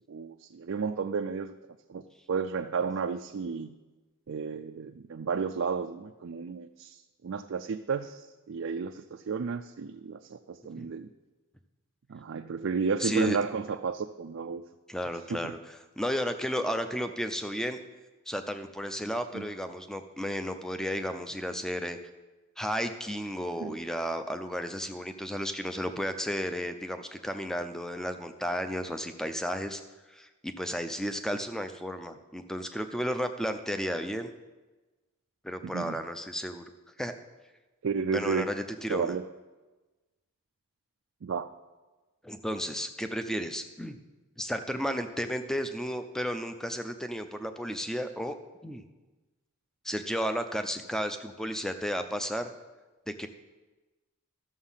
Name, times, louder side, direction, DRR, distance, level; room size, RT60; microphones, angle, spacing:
voice 1, 0.1-1.5 1.9-3.7 4.3-11.1 12.1-14.6 15.3-15.5 19.3-19.4 23.5-23.8 35.6-36.0 37.8-38.5 38.9-39.3 41.2-41.5, right 5 dB, 60° right, 6 dB, 0.4 m, -32 dB
voice 2, 13.0-13.4 14.9-17.8 18.3-22.0 22.6-29.8 30.1-34.3 35.4-36.6 37.0-37.1 38.1-39.2 42.2-44.0 44.4-48.4 48.6-48.8 49.8-52.5 53.2-53.3, equal, ahead, 8 dB, 0.5 m, -33 dB
13.0 x 7.0 x 5.6 m, 1.2 s
head